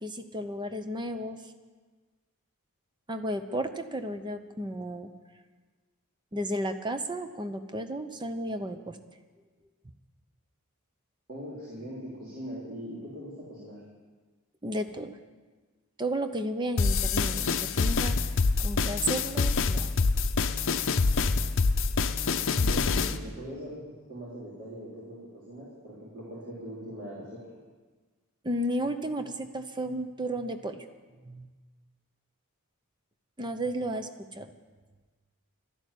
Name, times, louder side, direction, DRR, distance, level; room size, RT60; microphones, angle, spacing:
voice 1, 0.0-1.4 3.1-5.1 6.3-9.0 14.6-15.2 16.0-18.2 18.6-19.9 28.4-30.8 31.2-31.5 33.4-34.5, right 1 dB, 20° right, 8 dB, 0.8 m, -33 dB
voice 2, 11.3-13.8 22.4-23.8 24.1-27.4, equal, 40° right, -8 dB, 3.5 m, -41 dB
sound 1, 16.8-23.2, left 4 dB, 60° left, 0.7 m, -26 dB
12.5 x 11.5 x 8.3 m, 1.4 s
head